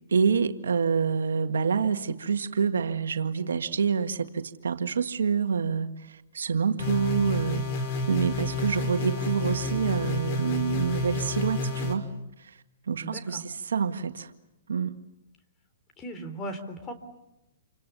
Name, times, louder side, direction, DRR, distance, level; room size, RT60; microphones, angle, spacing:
voice 1, 0.1-7.7 8.0-12.1 12.4-14.3 14.7-15.0, right 6 dB, 85° right, 1.7 m, -27 dB
sound 1, 6.8-11.9, left 2 dB, 45° left, 5.8 m, -30 dB
voice 2, 13.0-13.4 16.0-16.9, right 1 dB, 20° left, 3.7 m, -37 dB
29.0 x 26.0 x 7.0 m
hypercardioid pair, 140°, 0 cm